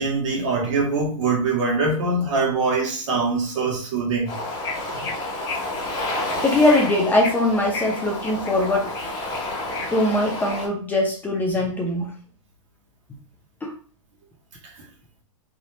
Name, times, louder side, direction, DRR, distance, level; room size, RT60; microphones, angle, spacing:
voice 1, 0.0-4.3, right 3 dB, 65° right, 1.7 m, -23 dB
Bird / Ocean, 4.3-10.7, left 2 dB, 25° left, 1.8 m, -29 dB
voice 2, 6.4-8.9 9.9-12.1 13.6-13.7, left 1 dB, 10° left, 0.7 m, -21 dB
3.5 x 2.7 x 2.8 m
hypercardioid pair, 125°, 17 cm